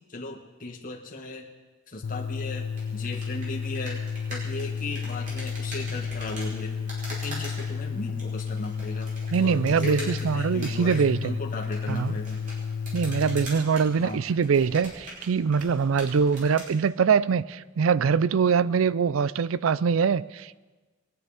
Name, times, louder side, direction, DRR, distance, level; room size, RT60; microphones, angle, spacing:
voice 1, 0.1-1.5 1.9-2.7 2.9-6.8 7.1-9.1 9.4-12.4 14.0-14.2, left 2 dB, 45° left, 0 dB, 1.7 m, -37 dB
sound 1, 2.0-13.5, left 6 dB, 60° left, 0.4 m, -32 dB
sound 2, 2.7-16.7, right 1 dB, 40° right, 5.3 m, -43 dB
voice 2, 9.3-11.3 11.9-12.1 12.9-20.6, right 6 dB, 80° right, 19 dB, 0.4 m, -23 dB
22.0 x 9.8 x 5.0 m, 1.3 s
head